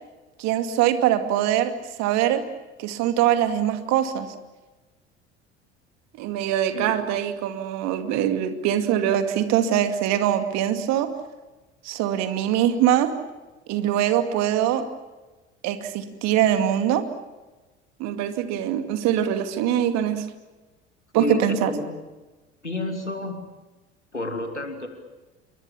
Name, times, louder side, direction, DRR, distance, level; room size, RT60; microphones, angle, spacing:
voice 1, 0.4-1.7 2.0-2.4 2.8-4.3 6.2-11.1 11.8-13.1 13.7-14.8 15.6-17.0 18.0-20.2 21.1-21.7, right 11 dB, 50° right, 8 dB, 2.4 m, -23 dB
voice 2, 21.2-21.9 22.6-23.3 24.1-24.9, left 1 dB, 90° left, 5 dB, 2.8 m, -30 dB
28.0 x 23.5 x 7.2 m, 1.2 s
figure-of-eight pair, 65°, 34 cm